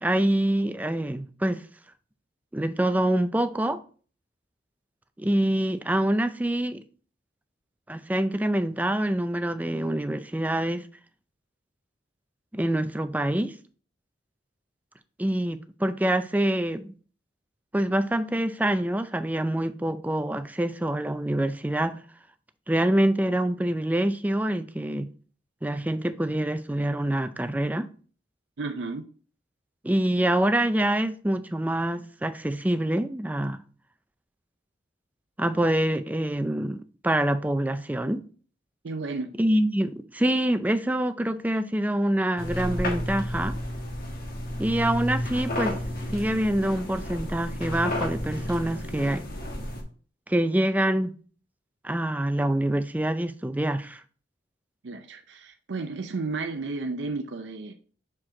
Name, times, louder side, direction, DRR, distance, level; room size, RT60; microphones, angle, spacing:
voice 1, 0.0-1.6 2.5-3.8 5.2-6.8 7.9-10.9 12.5-13.6 15.2-16.9 17.7-22.0 22.7-25.1 25.6-27.9 29.8-33.6 35.4-38.2 39.4-43.6 44.6-45.8 46.1-49.2 50.3-51.1 51.8-54.0, right 1 dB, 10° right, 0.4 m, -25 dB
voice 2, 28.6-29.1 38.8-39.3 54.8-57.7, right 3 dB, 70° right, 0.5 m, -33 dB
sound 1, 42.4-49.8, left 1 dB, 55° left, 1.4 m, -32 dB
6.0 x 4.8 x 3.7 m
head